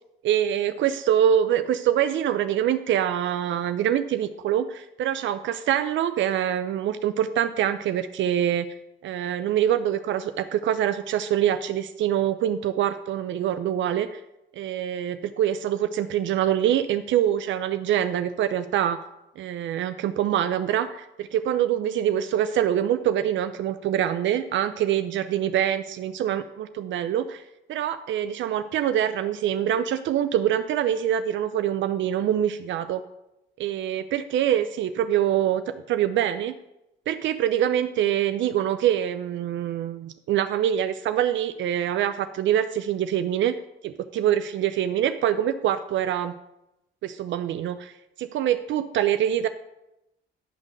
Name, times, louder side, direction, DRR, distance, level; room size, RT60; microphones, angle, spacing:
voice 1, 0.2-8.7 9.0-14.2 14.6-19.0 19.4-33.0 33.6-35.6 35.9-36.5 37.1-43.6 43.8-46.3 47.0-47.9 48.2-49.5, right 10 dB, 70° right, 10 dB, 0.5 m, -25 dB
10.5 x 3.7 x 6.4 m, 0.90 s
cardioid pair, 90°, 20 cm